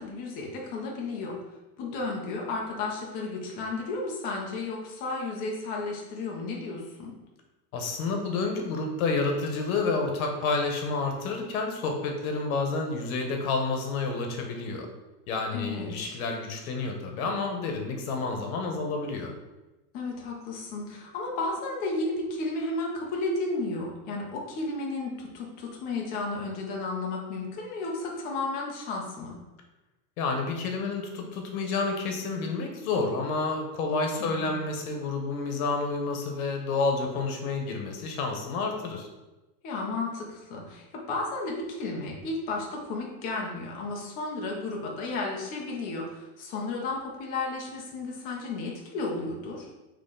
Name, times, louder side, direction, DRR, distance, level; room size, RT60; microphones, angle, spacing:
voice 1, 0.0-1.4 1.8-7.1 15.5-16.2 19.9-29.3 34.2-34.6 39.6-49.7, left 3 dB, 20° left, -1 dB, 0.5 m, -33 dB
voice 2, 7.7-14.9 15.3-19.3 30.2-39.1, left 3 dB, 60° left, 3 dB, 1.1 m, -29 dB
4.3 x 3.1 x 3.8 m, 1.1 s
supercardioid pair, 165°, 47 cm